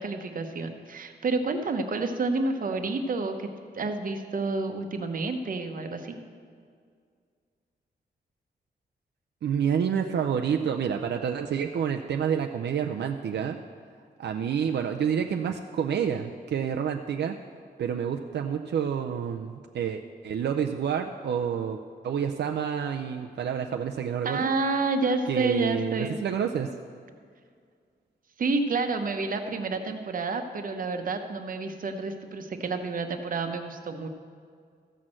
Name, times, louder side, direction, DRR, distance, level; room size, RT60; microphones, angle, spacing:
voice 1, 0.0-3.5 3.7-6.2 24.2-26.2 28.4-34.1, right 3 dB, 50° right, 6 dB, 0.9 m, -29 dB
voice 2, 9.4-13.6 14.2-17.4 17.8-21.8 22.0-24.5 25.3-26.7, right 8 dB, 80° right, 4 dB, 0.5 m, -28 dB
14.5 x 6.2 x 7.6 m, 2.1 s
wide cardioid pair, 170°, 18 cm